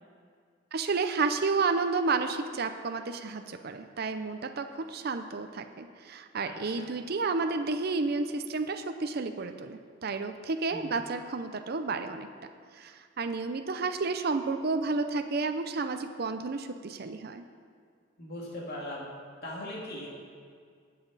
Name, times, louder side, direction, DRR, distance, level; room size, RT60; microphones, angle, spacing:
voice 1, 0.7-12.3 12.7-17.4, right 4 dB, 55° right, 7 dB, 0.6 m, -31 dB
voice 2, 6.4-6.9 10.7-11.0 18.2-19.0 19.4-20.1, left 1 dB, 55° left, -5 dB, 2.5 m, -40 dB
20.0 x 7.6 x 4.0 m, 2.1 s
head